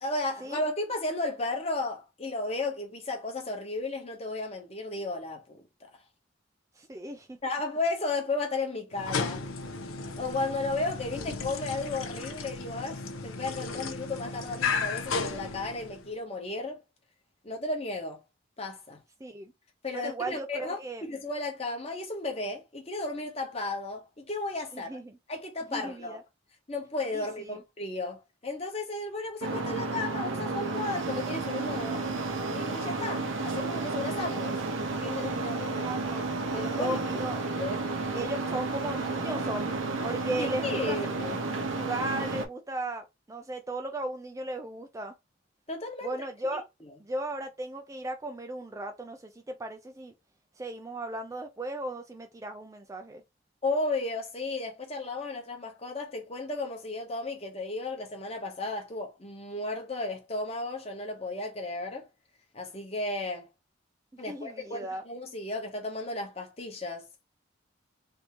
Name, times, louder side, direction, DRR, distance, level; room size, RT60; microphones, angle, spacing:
voice 1, 0.0-5.6 7.4-9.4 10.2-16.8 17.4-18.2 18.6-19.0 19.8-25.0 25.3-26.2 26.7-32.1 32.5-34.6 34.9-35.9 36.4-37.0 37.6-37.9 40.4-41.4 45.7-46.2 53.6-62.1 62.5-63.5 64.2-67.1, left 2 dB, 30° left, 0.9 m, -34 dB
voice 2, 6.8-7.4 19.2-19.5 19.9-21.0 24.7-25.2 25.7-26.2 27.1-27.6 35.8-36.3 36.7-37.4 38.1-39.7 40.0-41.0 41.7-45.1 46.0-46.6 47.0-50.1 50.6-53.2 64.3-65.0, right 1 dB, 15° right, 0.3 m, -36 dB
sound 1, 8.9-16.1, left 4 dB, 90° left, 0.7 m, -34 dB
sound 2, 29.4-42.5, right 3 dB, 75° right, 0.8 m, -32 dB
3.4 x 2.7 x 2.9 m
head